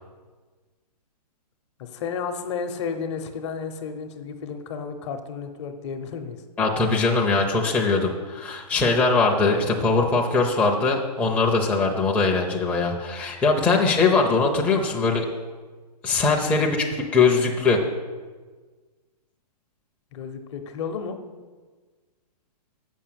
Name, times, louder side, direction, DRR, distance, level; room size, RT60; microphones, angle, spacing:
voice 1, 1.8-6.4 16.7-16.8 20.1-21.2, left 6 dB, 45° left, 7 dB, 0.9 m, -32 dB
voice 2, 6.6-15.2 16.0-16.9 17.1-17.8, left 4 dB, 5° left, -1 dB, 0.7 m, -21 dB
6.7 x 6.2 x 7.6 m, 1.4 s
hypercardioid pair, 140°, 21 cm